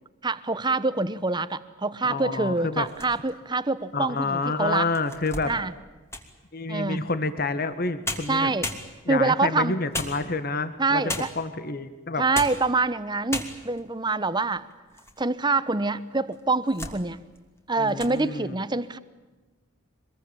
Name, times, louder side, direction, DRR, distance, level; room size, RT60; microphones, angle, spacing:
voice 1, 0.2-4.9 5.5-5.7 6.7-7.0 8.3-8.7 9.1-9.8 10.8-11.3 12.2-14.6 15.2-17.2 17.7-19.0, right 3 dB, 20° right, 15 dB, 1.1 m, -25 dB
voice 2, 2.0-2.9 3.9-5.5 6.5-8.5 9.1-11.0 11.4-12.2 17.8-18.6, left 3 dB, 50° left, 12 dB, 1.7 m, -28 dB
sound 1, 2.8-3.5 4.1-4.2 4.7-6.4 7.7-7.8 8.0-9.3 9.9-10.6 11.1-11.5 12.2-12.7 13.0-13.1 13.3-13.9 14.4-15.2 15.5-15.6 16.3-17.0 17.4-17.6 17.9-18.2, left 1 dB, 15° left, 2.9 m, -35 dB
25.5 x 22.0 x 8.9 m, 1.2 s
head